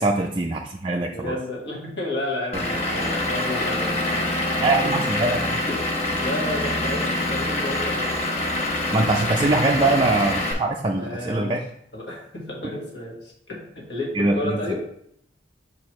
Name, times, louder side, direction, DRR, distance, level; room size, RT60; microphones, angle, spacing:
voice 1, 0.0-1.3 2.5-2.6 4.6-5.6 8.9-11.6 14.1-14.6, right 2 dB, 25° right, 1 dB, 0.4 m, -23 dB
voice 2, 1.1-4.6 4.8-4.9 5.7-8.2 9.8-9.9 10.9-11.5 11.9-14.9, left 1 dB, 60° left, -3 dB, 1.5 m, -32 dB
Vehicle / Engine, 2.5-10.5, left 1 dB, 35° left, 1.0 m, -25 dB
6.6 x 4.8 x 3.1 m, 0.71 s
head